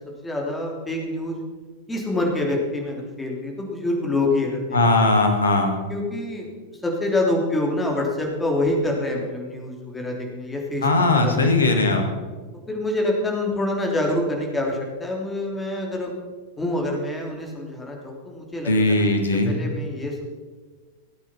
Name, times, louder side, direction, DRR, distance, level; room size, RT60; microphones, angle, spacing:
voice 1, 0.2-1.4 1.9-5.1 5.9-6.5 6.8-10.9 11.1-11.8 12.7-16.1 16.6-19.0 19.5-20.2, left 1 dB, 10° left, 0 dB, 3.3 m, -26 dB
voice 2, 4.7-5.8 10.8-12.1 18.6-19.6, left 2 dB, 70° left, 4 dB, 2.2 m, -19 dB
17.0 x 8.9 x 5.9 m, 1.4 s
figure-of-eight pair, 90°, 0 cm